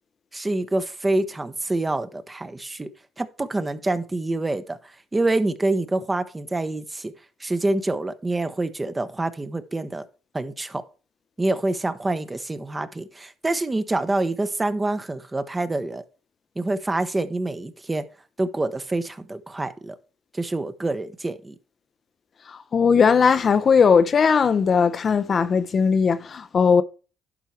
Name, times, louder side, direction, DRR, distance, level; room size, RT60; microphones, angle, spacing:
voice 1, 0.3-2.9 3.2-4.8 5.1-7.1 7.4-10.0 10.3-10.8 11.4-16.0 16.6-18.1 18.4-20.0 20.3-21.5, right 2 dB, 20° right, 1.0 m, -26 dB
voice 2, 22.5-26.8, left 6 dB, 45° left, 0.7 m, -18 dB
11.0 x 4.6 x 4.5 m
supercardioid pair, 70°, 0 cm